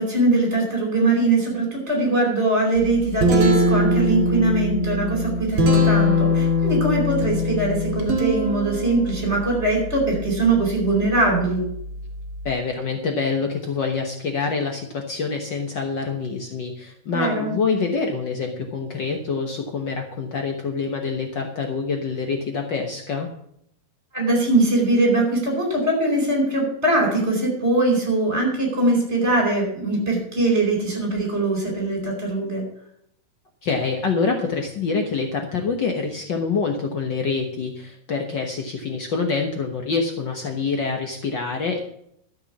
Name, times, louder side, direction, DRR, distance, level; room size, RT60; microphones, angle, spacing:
voice 1, 0.0-11.7 17.1-17.5 24.1-32.6, right 2 dB, 20° right, 0 dB, 4.6 m, -21 dB
Guitar, 2.8-12.5, left 1 dB, 40° right, 3.3 m, -23 dB
voice 2, 12.4-23.3 33.6-41.8, left 4 dB, 85° left, 3 dB, 1.0 m, -26 dB
13.0 x 7.1 x 7.2 m, 0.71 s
omnidirectional pair, 3.9 m